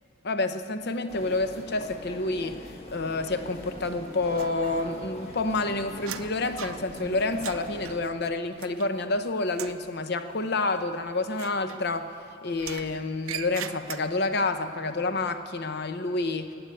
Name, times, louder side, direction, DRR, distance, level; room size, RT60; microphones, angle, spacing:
voice 1, 0.2-2.6 2.9-12.1 12.4-16.5, left 2 dB, 50° left, 9 dB, 0.8 m, -29 dB
sound 1, 1.1-8.0, left 2 dB, 30° left, 1.5 m, -43 dB
sound 2, 4.4-5.1 5.4-9.2 9.5-9.9 11.3-12.2 12.6-14.4, right 9 dB, 85° right, 0.6 m, -41 dB
15.5 x 9.6 x 9.6 m, 2.3 s
head